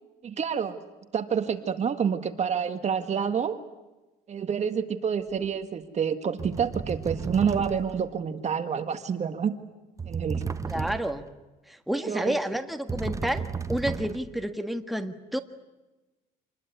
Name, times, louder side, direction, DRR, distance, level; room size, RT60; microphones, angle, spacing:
voice 1, 0.2-0.8 1.1-3.6 4.3-9.5 10.1-10.4 12.0-12.4, right 7 dB, 40° right, 9 dB, 1.8 m, -28 dB
sound 1, 5.4-5.6 6.4-8.1 10.0-11.3 12.9-14.4, right 5 dB, 20° right, 1.1 m, -34 dB
voice 2, 10.7-11.2 11.7-15.4, right 1 dB, ahead, 7 dB, 1.6 m, -30 dB
27.0 x 21.0 x 9.5 m, 1.1 s
cardioid pair, 110°, 17 cm